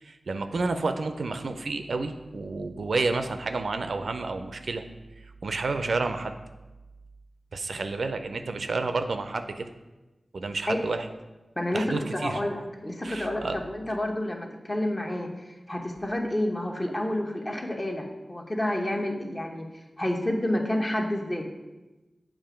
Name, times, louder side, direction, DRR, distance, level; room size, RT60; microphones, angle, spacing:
voice 1, 0.0-4.8 5.4-6.3 7.5-9.7 10.3-11.1 11.7-12.4 13.0-13.6, right 3 dB, 80° right, 8 dB, 0.4 m, -30 dB
voice 2, 11.6-15.3 15.7-19.7 20.0-21.5, left 1 dB, 35° left, 2 dB, 0.9 m, -29 dB
7.4 x 2.5 x 5.0 m, 1.1 s
cardioid pair, 40°, 0 cm